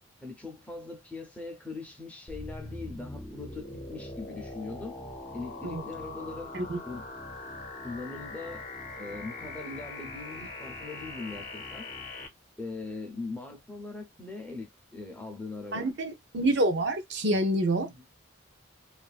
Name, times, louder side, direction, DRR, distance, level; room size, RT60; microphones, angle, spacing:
voice 1, 0.2-5.0 5.3-6.5 6.8-7.1 7.8-8.7 9.0-11.9 12.6-15.9 17.8-18.0, left 3 dB, 5° left, 0.7 m, -41 dB
sound 1, 2.3-12.3, left 2 dB, 35° left, 0.8 m, -41 dB
voice 2, 15.7-18.1, right 1 dB, 55° right, 0.7 m, -27 dB
2.6 x 2.5 x 2.3 m
head